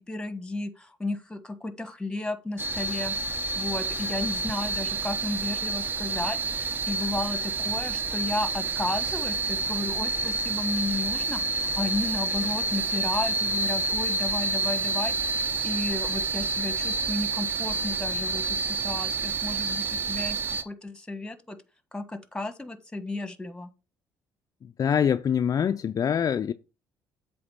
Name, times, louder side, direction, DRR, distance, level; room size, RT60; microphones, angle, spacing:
voice 1, 0.0-3.1 3.4-21.6 21.9-23.7, left 2 dB, 10° left, 1.3 m, -33 dB
sound 1, 2.6-20.6, right 3 dB, 25° right, 0.8 m, -29 dB
voice 2, 24.6-26.5, left 8 dB, 40° left, 0.4 m, -25 dB
7.8 x 3.5 x 5.8 m
supercardioid pair, 65°, 9 cm